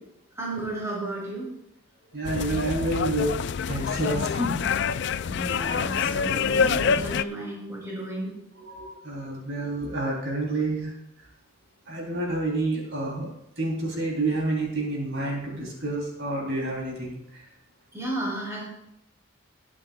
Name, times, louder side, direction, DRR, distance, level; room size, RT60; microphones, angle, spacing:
voice 1, 0.4-1.5 5.3-8.4 17.9-18.6, right 1 dB, 15° right, -4 dB, 4.1 m, -33 dB
voice 2, 2.1-3.3 3.7-5.0 8.6-10.9 11.9-13.3 13.6-17.2, right 2 dB, 60° right, -2 dB, 3.3 m, -29 dB
sound 1, 2.2-7.2, left 6 dB, 55° left, 0.3 m, -26 dB
20.5 x 8.7 x 2.3 m, 0.78 s
head